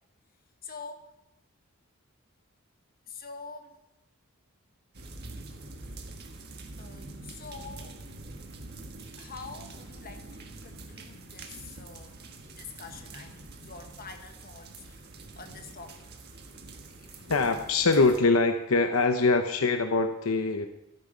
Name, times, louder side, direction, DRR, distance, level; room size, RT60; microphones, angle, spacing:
voice 1, 0.6-1.1 3.1-3.8 6.8-8.0 9.2-16.1 17.0-17.4, left 4 dB, 45° left, 5 dB, 1.5 m, -46 dB
sound 1, 4.9-18.2, right 2 dB, 50° right, 1.5 m, -45 dB
voice 2, 17.3-20.7, left 3 dB, 75° left, 7 dB, 0.8 m, -23 dB
13.0 x 9.8 x 5.1 m, 0.87 s
head